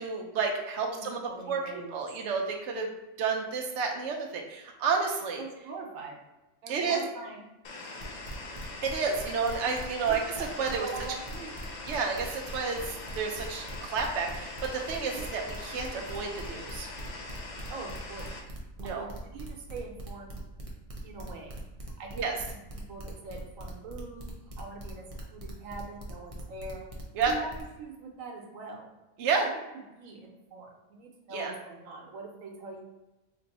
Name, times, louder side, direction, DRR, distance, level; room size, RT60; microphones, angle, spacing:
voice 1, 0.0-1.2 1.5-1.6 1.9-2.9 3.2-5.4 6.7-7.0 8.8-10.9 11.9-12.8 13.1-16.9 18.8-19.1 22.1-22.4 27.1-27.3 29.2-29.5 31.3-31.5, right 5 dB, 70° right, 1 dB, 0.9 m, -30 dB
voice 2, 0.8-1.9 5.4-6.2 6.6-7.4 10.1-11.5 15.1-15.2 17.7-18.3 18.8-20.4 21.0-21.6 22.0-24.2 24.6-25.1 25.3-26.9 27.3-28.9 29.5-29.6 29.9-32.8, right 3 dB, 90° right, 1 dB, 1.2 m, -43 dB
sound 1, 7.6-18.4, left 2 dB, 60° left, 0.4 m, -42 dB
sound 2, 8.0-27.6, right 1 dB, 40° right, 0.5 m, -42 dB
3.0 x 2.6 x 4.0 m, 1.0 s
omnidirectional pair, 1.3 m